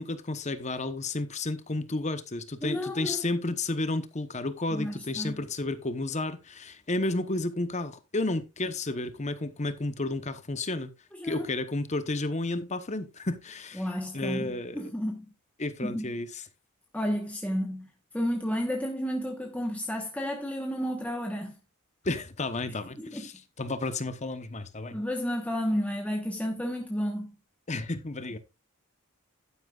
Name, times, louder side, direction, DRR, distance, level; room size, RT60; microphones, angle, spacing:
voice 1, 0.0-10.9 11.2-13.9 14.1-14.8 15.6-16.4 22.0-25.0 27.7-28.4, left 2 dB, 30° left, 0.9 m, -32 dB
voice 2, 2.6-3.3 4.7-5.4 11.2-11.5 13.8-14.5 14.7-15.3 15.8-16.0 16.9-17.9 18.1-21.5 23.0-23.2 24.9-27.3, equal, 5° left, 1.1 m, -31 dB
11.5 x 10.0 x 2.4 m
head